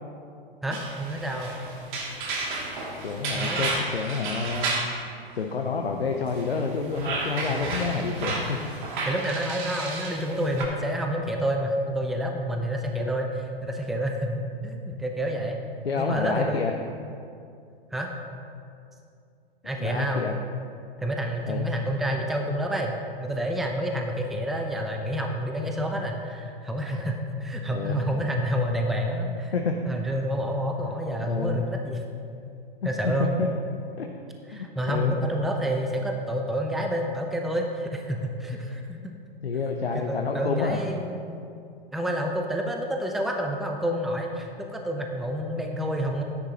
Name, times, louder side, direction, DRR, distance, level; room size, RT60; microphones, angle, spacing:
voice 1, 0.6-1.5 3.3-3.7 7.5-7.7 9.0-15.6 16.0-16.7 17.9-18.1 19.6-20.3 21.0-22.9 23.2-29.5 29.9-32.1 32.8-33.3 34.5-39.1 39.9-41.4 41.9-46.2, equal, ahead, 2 dB, 0.7 m, -29 dB
sound 1, 0.7-5.0 6.3-10.6, right 3 dB, 55° right, 2.6 m, -32 dB
voice 2, 3.0-5.0 5.3-8.6 12.9-13.1 15.8-16.7 19.8-20.4 21.5-21.7 27.7-28.0 29.5-29.7 31.3-31.6 32.8-33.5 34.0-34.1 34.5-35.2 39.4-40.8, left 4 dB, 85° left, 2 dB, 0.8 m, -29 dB
12.5 x 9.8 x 3.0 m, 2.4 s
figure-of-eight pair, 105°, 30 cm